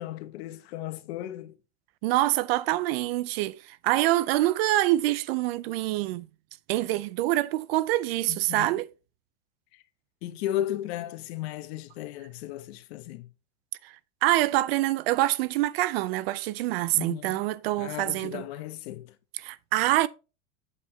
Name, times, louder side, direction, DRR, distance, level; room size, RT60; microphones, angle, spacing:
voice 1, 0.0-1.6 8.3-8.7 9.7-9.8 10.2-13.3 16.9-17.4 17.8-19.1, left 13 dB, 55° left, 1.1 m, -35 dB
voice 2, 2.0-6.3 6.7-8.9 13.8-13.9 14.2-18.4 19.4-20.1, right 16 dB, 50° right, 0.5 m, -25 dB
8.4 x 7.7 x 2.7 m
supercardioid pair, 160°, 38 cm